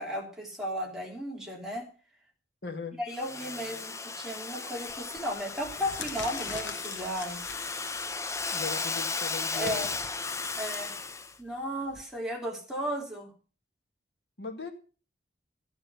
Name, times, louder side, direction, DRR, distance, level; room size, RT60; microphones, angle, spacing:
voice 1, 0.0-1.9 2.9-7.4 9.5-9.9 10.6-11.0 11.4-13.3, equal, 5° right, -1 dB, 3.1 m, -35 dB
voice 2, 2.6-2.9 8.5-9.9 14.4-14.7, left 5 dB, 65° left, 5 dB, 2.0 m, -38 dB
Domestic sounds home sounds, 3.1-11.3, left 4 dB, 15° left, 0.6 m, -35 dB
sound 1, 4.8-5.1 5.5-12.0, left 6 dB, 85° left, 1.1 m, -45 dB
14.0 x 9.2 x 5.7 m, 0.37 s
head